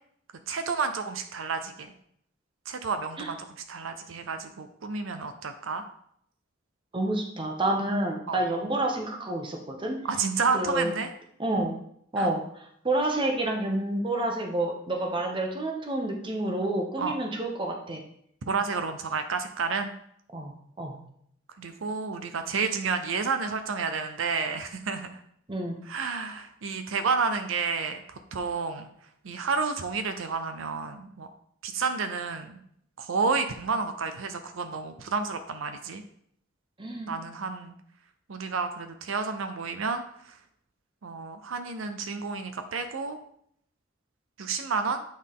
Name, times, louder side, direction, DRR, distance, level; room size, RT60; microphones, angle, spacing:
voice 1, 0.5-1.9 2.7-3.4 3.7-5.8 8.3-8.4 10.0-11.1 12.2-12.3 17.0-17.2 18.5-19.9 21.6-25.2 25.8-28.9 29.2-31.3 31.6-32.6 33.0-36.0 37.1-37.7 38.3-40.4 41.0-43.2 44.4-45.0, right 5 dB, 85° right, 8 dB, 0.6 m, -30 dB
voice 2, 6.9-9.9 10.5-10.9 11.4-11.8 12.1-18.0 20.3-21.0 25.5-25.8 36.8-37.1, right 1 dB, 25° right, 2 dB, 0.9 m, -29 dB
8.7 x 4.0 x 3.6 m, 0.69 s
head